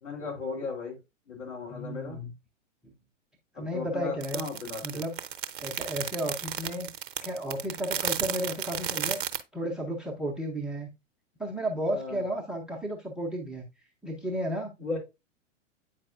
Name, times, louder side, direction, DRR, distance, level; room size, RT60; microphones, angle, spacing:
voice 1, 0.0-1.0 1.3-2.2 3.5-5.0 11.9-12.2 14.8-15.0, left 4 dB, 70° left, -2 dB, 3.4 m, -36 dB
voice 2, 1.7-2.3 3.6-4.4 4.8-5.2 5.6-6.9 7.2-9.2 9.5-10.9 11.4-13.7 14.0-14.7, right 1 dB, ahead, 1 dB, 0.4 m, -33 dB
sound 1, 4.2-9.4, right 9 dB, 45° right, 0.6 m, -33 dB
8.5 x 4.6 x 2.4 m, 0.24 s
figure-of-eight pair, 100°, 38 cm